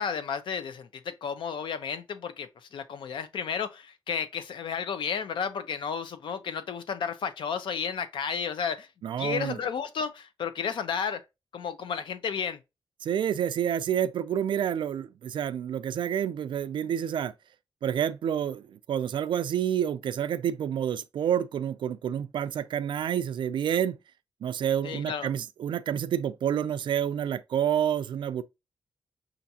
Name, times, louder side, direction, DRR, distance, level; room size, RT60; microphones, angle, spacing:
voice 1, 0.0-8.9 9.2-11.2 11.5-12.6 24.8-25.3, left 6 dB, 70° left, 0.6 m, -32 dB
voice 2, 9.0-9.6 13.0-17.3 17.8-24.0 24.4-28.4, right 9 dB, 65° right, 0.4 m, -28 dB
5.7 x 2.5 x 2.7 m
wide cardioid pair, 175°, 9 cm